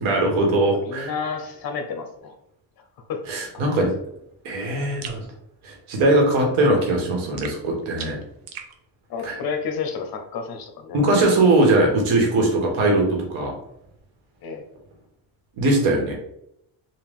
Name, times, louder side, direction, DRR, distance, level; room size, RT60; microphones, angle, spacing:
voice 1, 0.0-1.1 3.3-3.9 4.4-5.2 5.6-8.2 9.2-9.4 10.9-13.5 15.6-16.2, right 2 dB, 80° right, 0 dB, 1.5 m, -20 dB
voice 2, 0.7-2.3 3.1-3.2 3.5-3.6 9.1-11.0 14.4-14.6, left 5 dB, 50° left, 5 dB, 0.8 m, -30 dB
sound 1, 5.0-5.2 7.4-8.7, right 7 dB, 45° right, 0.7 m, -38 dB
3.9 x 2.5 x 3.5 m, 0.76 s
cardioid pair, 115°, 48 cm